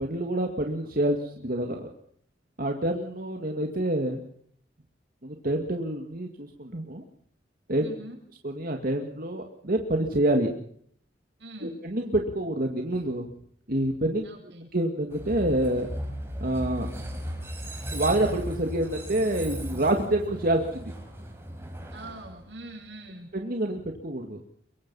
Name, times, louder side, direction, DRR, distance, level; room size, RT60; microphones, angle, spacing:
voice 1, 0.0-1.9 2.6-4.2 5.2-7.0 7.7-7.9 8.4-10.5 11.6-13.3 13.7-14.2 14.7-15.9 16.4-16.9 17.9-20.9 23.3-24.4, right 1 dB, 55° right, 3 dB, 2.1 m, -27 dB
voice 2, 7.8-8.2 11.4-11.8 14.2-14.7 21.9-23.3, right 1 dB, 85° right, 0 dB, 7.9 m, -43 dB
Train, 15.1-23.1, equal, 15° right, 4.8 m, -36 dB
24.0 x 23.0 x 5.6 m, 0.63 s
head